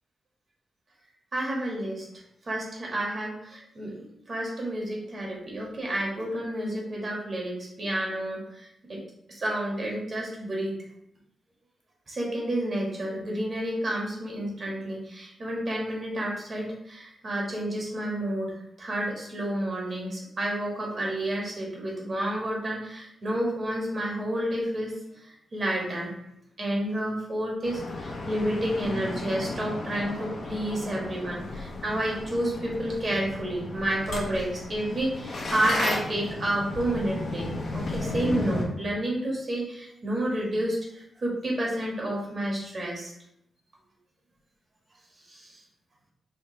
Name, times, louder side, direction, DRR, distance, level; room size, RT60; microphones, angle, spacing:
voice 1, 1.3-2.1 2.4-9.0 9.3-10.8 12.1-26.1 26.6-43.1 45.3-45.6, right 1 dB, 50° right, -3 dB, 1.6 m, -30 dB
sound 1, 27.6-38.7, left 2 dB, 70° left, 0.8 m, -34 dB
4.9 x 2.5 x 3.1 m, 0.77 s
cardioid pair, 65°, 0 cm